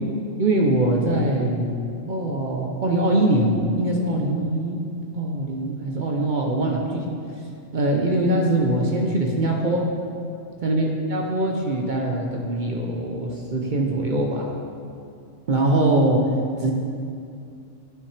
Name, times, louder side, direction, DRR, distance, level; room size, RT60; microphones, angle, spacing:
voice 1, 0.4-1.7 2.1-4.8 5.1-7.1 7.7-9.8 10.6-14.5 15.5-16.2 16.6-16.7, right 1 dB, 50° right, 0 dB, 0.6 m, -22 dB
9.3 x 5.6 x 3.2 m, 2.5 s
omnidirectional pair, 1.3 m